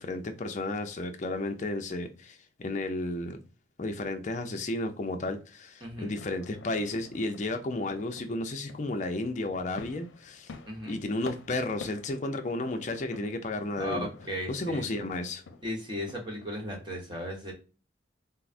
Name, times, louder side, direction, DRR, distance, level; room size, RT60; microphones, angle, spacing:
voice 1, 0.0-3.4 3.8-10.5 10.9-14.1 14.5-15.4, left 2 dB, 40° left, 0.5 m, -33 dB
voice 2, 5.8-6.1 10.7-11.0 13.8-14.8 15.6-17.5, equal, 25° right, 1.0 m, -36 dB
sound 1, 6.1-17.0, left 4 dB, 90° left, 0.5 m, -49 dB
4.5 x 2.0 x 2.4 m
head